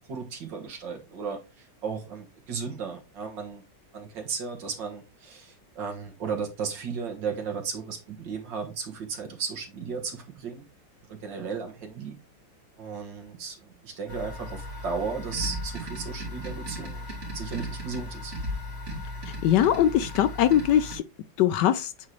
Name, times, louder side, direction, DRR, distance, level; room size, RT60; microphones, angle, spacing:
voice 1, 0.1-3.6 3.9-10.7 11.1-12.2 12.8-17.1 17.3-18.3, right 5 dB, 70° right, 2.0 m, -35 dB
sound 1, 14.1-21.0, equal, 35° right, 2.8 m, -36 dB
voice 2, 19.4-21.0 21.4-21.9, left 11 dB, 75° left, 1.1 m, -21 dB
8.3 x 3.8 x 3.1 m
omnidirectional pair, 2.1 m